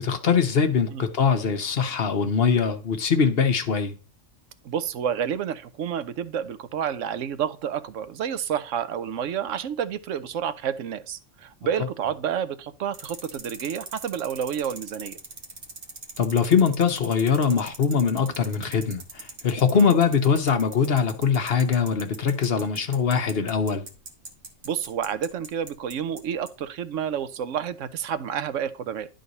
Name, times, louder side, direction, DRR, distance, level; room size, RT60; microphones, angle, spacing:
voice 1, 0.0-3.9 16.2-23.9, left 6 dB, 55° left, 1.1 m, -22 dB
voice 2, 4.6-15.2 19.7-20.0 24.6-29.1, right 8 dB, 85° right, 1.0 m, -29 dB
sound 1, 12.9-26.2 26.5-26.6, right 3 dB, 65° right, 1.5 m, -40 dB
11.0 x 3.9 x 4.0 m
omnidirectional pair, 1.3 m